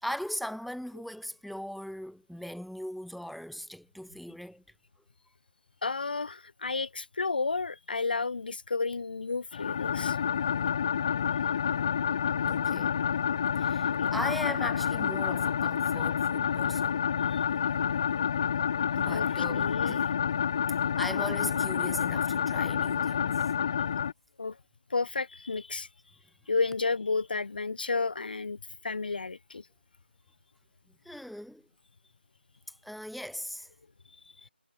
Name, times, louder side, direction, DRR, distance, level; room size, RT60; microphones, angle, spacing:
voice 1, 0.0-4.6 12.4-13.0 13.6-17.0 19.0-20.0 21.0-23.5 31.0-31.6 32.8-33.7, equal, ahead, 4.2 m, -39 dB
voice 2, 5.8-10.2 13.9-14.1 17.3-17.4 19.1-20.1 24.4-24.6 24.9-25.9 26.5-29.6, left 4 dB, 55° left, 1.4 m, -32 dB
sound 1, 9.5-24.1, left 7 dB, 25° left, 0.4 m, -28 dB
figure-of-eight pair, 160°, 6 cm